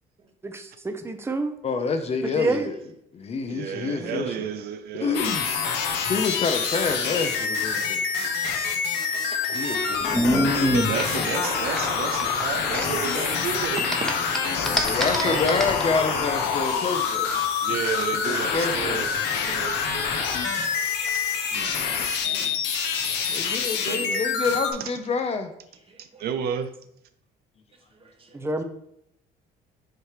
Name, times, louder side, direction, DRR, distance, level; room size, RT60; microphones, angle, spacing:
voice 1, 0.4-1.5 2.2-2.7 3.7-4.3 28.3-28.6, right 3 dB, 15° right, 6 dB, 0.7 m, -29 dB
voice 2, 1.6-2.8 3.1-4.4 4.9-5.5 6.1-8.0 9.5-10.3 11.1-11.4 14.8-17.3 17.7-17.9 18.3-19.2 23.3-25.5, left 4 dB, 40° left, 7 dB, 0.7 m, -28 dB
voice 3, 3.5-5.2 10.7-13.8 15.2-15.5 17.6-19.1 19.4-20.1 20.5-20.6 21.0-21.2 23.9-24.2 24.8-24.9 26.0-26.7, right 8 dB, 70° right, 9 dB, 0.5 m, -32 dB
sound 1, 5.1-24.7, left 6 dB, 90° left, 0.9 m, -26 dB
voice 4, 8.0-9.8 10.5-10.7 13.8-14.0 15.1-15.6 21.5-22.6 25.9-26.2 28.0-28.4, right 3 dB, 35° right, 3 dB, 1.2 m, -42 dB
sound 2, 9.0-13.4 13.6-15.8, equal, ahead, 1.0 m, -26 dB
6.6 x 3.1 x 4.9 m, 0.76 s
cardioid pair, 110°, 17 cm